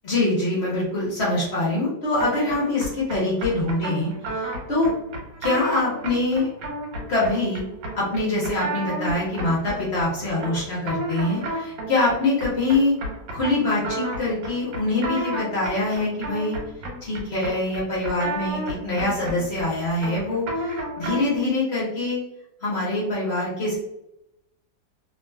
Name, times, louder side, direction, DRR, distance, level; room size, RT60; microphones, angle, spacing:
voice 1, 0.0-4.9 5.4-6.5 7.1-7.6 7.9-13.0 13.3-16.6 17.0-22.2 22.6-23.8, left 2 dB, 50° left, -6 dB, 0.8 m, -24 dB
sound 1, 2.2-21.4, right 1 dB, 75° right, 1.5 m, -32 dB
2.9 x 2.9 x 2.2 m, 0.87 s
omnidirectional pair, 2.1 m